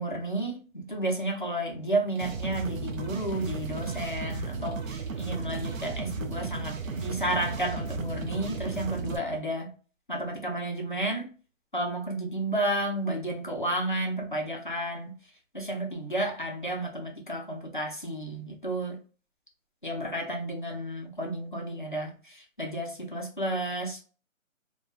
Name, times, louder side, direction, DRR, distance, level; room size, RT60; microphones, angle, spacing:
voice 1, 0.0-9.7 10.1-11.3 11.7-15.1 15.5-19.0 19.8-24.0, right 1 dB, 40° left, 0.4 m, -32 dB
sound 1, 2.1-9.2, right 4 dB, 75° right, 0.5 m, -35 dB
2.5 x 2.2 x 2.3 m
hypercardioid pair, 175°, 40 cm